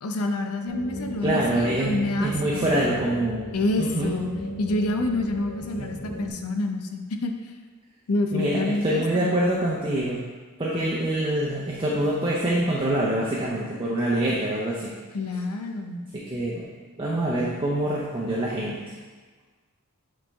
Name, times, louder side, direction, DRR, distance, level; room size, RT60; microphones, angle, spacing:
voice 1, 0.0-2.8 3.5-7.5 8.1-9.3 15.1-16.0, left 2 dB, 85° left, 5 dB, 0.6 m, -28 dB
sound 1, 0.7-6.3, left 1 dB, 50° left, 1.2 m, -37 dB
voice 2, 1.2-3.5 3.8-4.1 5.8-6.2 8.3-10.2 10.6-14.9 16.3-16.7 17.0-18.8, right 1 dB, 25° right, -6 dB, 0.6 m, -25 dB
8.5 x 3.3 x 3.4 m, 1.4 s
head